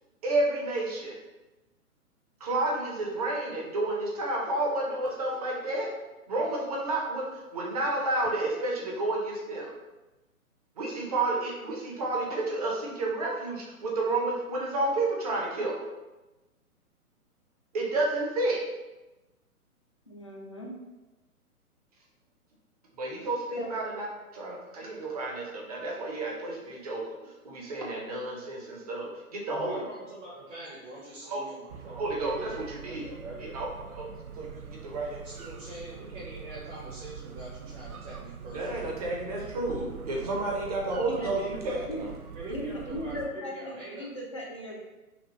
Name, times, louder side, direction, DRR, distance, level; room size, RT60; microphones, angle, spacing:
voice 1, 0.2-1.2 2.4-5.9 6.3-9.7 10.8-15.8 17.7-18.6 23.0-24.1 24.3-29.8 31.3-31.4 31.9-33.1 33.4-35.2 38.5-42.1, right 2 dB, 25° right, -2 dB, 0.8 m, -31 dB
voice 2, 20.1-20.7 23.6-23.7 41.1-41.3 41.9-42.0 42.5-44.8, equal, 20° left, -3 dB, 0.4 m, -37 dB
voice 3, 29.5-32.1 32.4-33.5 35.2-38.9 41.2-41.8 42.3-44.1, right 1 dB, 55° right, -5 dB, 1.3 m, -43 dB
sound 1, 31.7-43.3, right 6 dB, 75° right, 0.5 m, -43 dB
5.8 x 2.3 x 3.1 m, 1.1 s
figure-of-eight pair, 125°, 44 cm